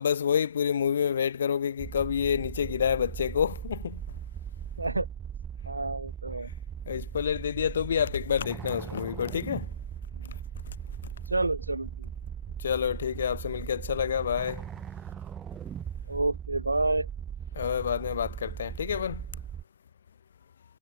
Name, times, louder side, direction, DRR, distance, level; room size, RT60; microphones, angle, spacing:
voice 1, 0.0-4.0 6.9-9.7 12.6-14.6 17.5-19.2, left 8 dB, 70° left, 0.4 m, -28 dB
sound 1, 1.8-19.6, right 8 dB, 25° right, 0.5 m, -39 dB
voice 2, 5.7-6.5 8.8-9.0 10.1-10.4 11.3-12.1 16.1-17.1, right 2 dB, 85° right, 0.9 m, -29 dB
figure-of-eight pair, 90°, 0 cm